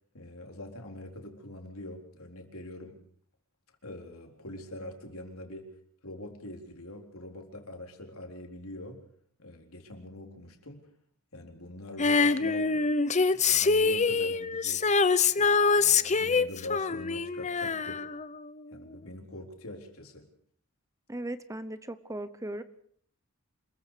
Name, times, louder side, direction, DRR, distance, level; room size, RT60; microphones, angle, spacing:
voice 1, 0.1-3.0 3.8-5.7 6.0-9.0 9.4-10.9 11.3-13.0 13.3-15.0 15.3-18.1 18.7-20.3, left 1 dB, 75° left, 3 dB, 4.1 m, -44 dB
Female singing, 12.0-18.6 18.9-19.0, left 4 dB, 35° left, 0.8 m, -25 dB
voice 2, 21.1-22.6, right 1 dB, 15° right, 13 dB, 0.9 m, -37 dB
27.0 x 22.0 x 5.1 m, 0.62 s
head